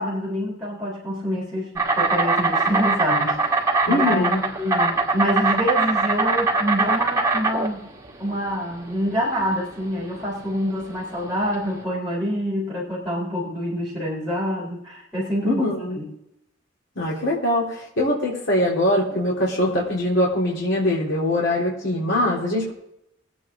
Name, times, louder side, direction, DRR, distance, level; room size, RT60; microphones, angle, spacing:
voice 1, 0.0-7.9 8.2-15.6 15.9-16.1, equal, ahead, -7 dB, 3.9 m, -26 dB
Insect, 1.8-11.8, right 3 dB, 15° right, 2.2 m, -22 dB
voice 2, 3.9-4.4 15.4-16.0 17.0-22.7, left 1 dB, 65° left, -5 dB, 3.6 m, -22 dB
21.0 x 8.6 x 3.7 m, 0.80 s
head